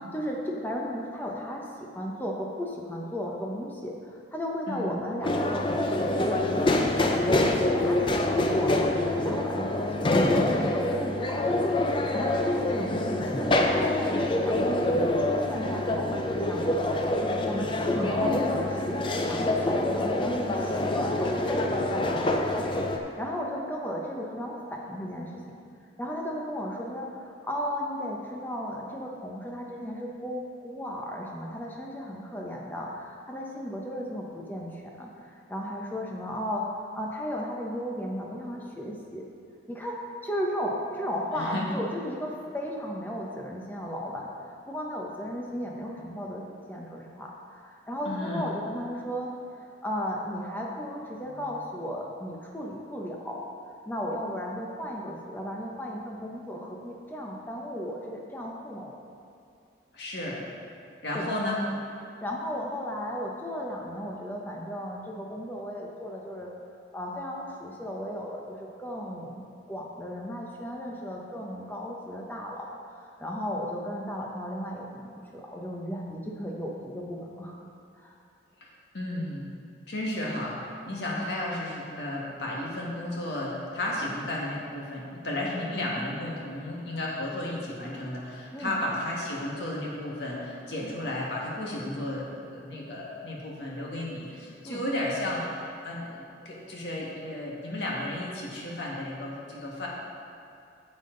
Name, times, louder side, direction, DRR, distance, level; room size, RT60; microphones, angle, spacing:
voice 1, 0.1-8.0 8.3-11.4 11.9-17.0 17.2-22.4 22.8-25.5 26.0-36.6 36.9-39.2 39.7-40.0 40.2-44.3 44.7-46.4 46.7-49.3 49.8-53.4 53.8-59.0 61.1-61.3 62.2-66.5 66.9-72.7 73.0-77.7 78.0-78.1 88.5-88.8 94.6-94.8, equal, 10° left, -2 dB, 0.9 m, -35 dB
sound 1, 5.2-23.0, left 1 dB, 30° left, 0.5 m, -26 dB
voice 2, 12.8-13.2 17.9-18.6 41.3-41.7 48.1-48.5 51.2-51.5 59.9-60.4 61.0-61.6 78.6-79.5 79.9-99.9, left 1 dB, 70° left, -4 dB, 1.7 m, -33 dB
9.2 x 7.3 x 3.9 m, 2.6 s
head